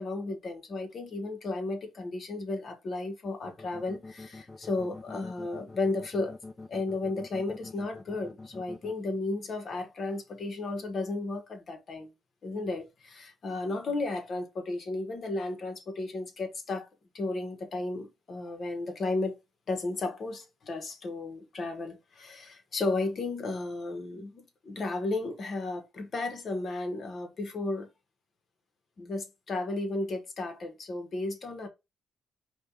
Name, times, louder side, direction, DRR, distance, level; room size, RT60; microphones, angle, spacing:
voice 1, 0.0-6.4 6.7-12.1 12.4-16.9 17.1-19.4 19.7-27.9 29.0-31.7, left 2 dB, 50° left, 1.3 m, -34 dB
sound 1, 3.4-8.9, left 3 dB, 25° left, 0.8 m, -45 dB
5.1 x 2.4 x 3.8 m
cardioid pair, 90°, 0 cm